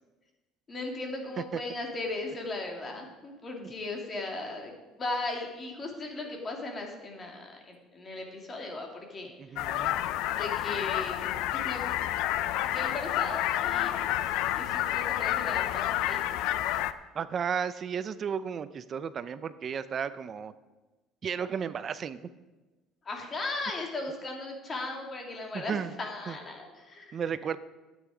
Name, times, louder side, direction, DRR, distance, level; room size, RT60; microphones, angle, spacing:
voice 1, 0.7-4.7 5.0-9.3 10.4-11.8 12.7-14.1 14.5-16.2 23.0-27.1, left 2 dB, 30° left, 1 dB, 2.5 m, -37 dB
voice 2, 9.4-9.9 17.1-20.5 21.2-22.2 25.5-25.9 26.3-26.4 27.1-27.6, right 7 dB, 35° right, 14 dB, 0.6 m, -33 dB
sound 1, 9.6-16.9, left 13 dB, 75° left, 0.5 m, -29 dB
12.5 x 9.2 x 5.0 m, 1.2 s
cardioid pair, 125°, 0 cm